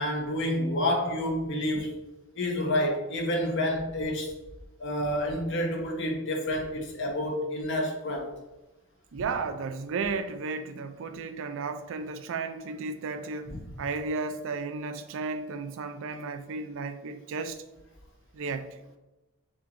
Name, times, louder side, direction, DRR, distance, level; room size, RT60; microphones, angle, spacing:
voice 1, 0.0-2.0 2.4-4.3 4.8-8.3 13.5-13.6, left 1 dB, 60° left, 0.9 m, -29 dB
voice 2, 9.1-17.6 18.3-18.7, right 4 dB, 65° right, 0.4 m, -34 dB
6.3 x 2.9 x 2.5 m
head